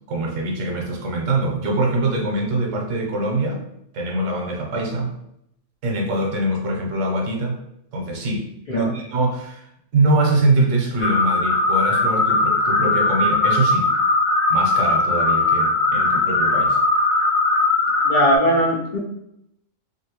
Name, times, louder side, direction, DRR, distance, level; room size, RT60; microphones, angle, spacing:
voice 1, 0.1-3.6 3.9-5.1 5.8-7.6 7.9-13.9 14.5-16.8, right 2 dB, 75° right, 0 dB, 1.1 m, -23 dB
nature or whistlers, 11.0-18.4, left 2 dB, 85° left, 1.1 m, -19 dB
voice 2, 18.0-19.0, equal, 55° left, -4 dB, 0.5 m, -19 dB
2.7 x 2.6 x 2.9 m, 0.77 s
omnidirectional pair, 1.3 m